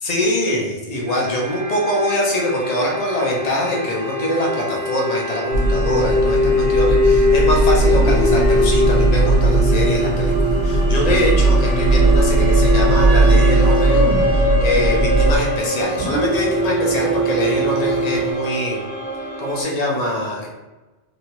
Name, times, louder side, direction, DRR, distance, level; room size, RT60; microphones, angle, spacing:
voice 1, 0.0-18.8 19.4-20.5, left 1 dB, 45° left, -2 dB, 0.7 m, -23 dB
sound 1, 1.1-19.6, left 2 dB, 45° right, 0.8 m, -23 dB
sound 2, 5.5-15.4, right 2 dB, 75° left, 1.2 m, -17 dB
sound 3, 7.9-14.4 16.0-18.3, right 4 dB, 70° right, 1.1 m, -24 dB
3.0 x 2.7 x 2.8 m, 1.1 s
omnidirectional pair, 1.1 m